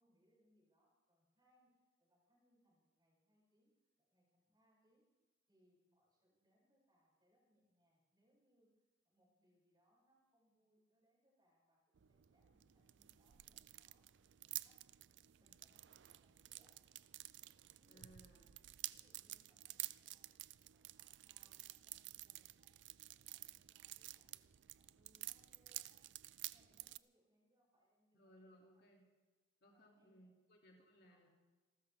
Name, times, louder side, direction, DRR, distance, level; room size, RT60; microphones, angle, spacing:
voice 1, 0.0-3.7 4.1-5.1 5.5-8.7 9.0-14.1 14.4-14.8 15.4-16.8 17.7-18.5 18.9-20.3 20.7-22.7 23.1-24.4 24.8-26.0 26.5-28.8 29.6-30.3 30.7-31.2, equal, 25° right, -4 dB, 7.0 m, -78 dB
sound 1, 11.9-27.0, right 17 dB, 70° right, 0.4 m, -52 dB
voice 2, 17.9-18.4 28.1-29.0 29.6-31.3, equal, 60° left, 0 dB, 2.9 m, -64 dB
27.5 x 13.5 x 3.7 m, 1.3 s
head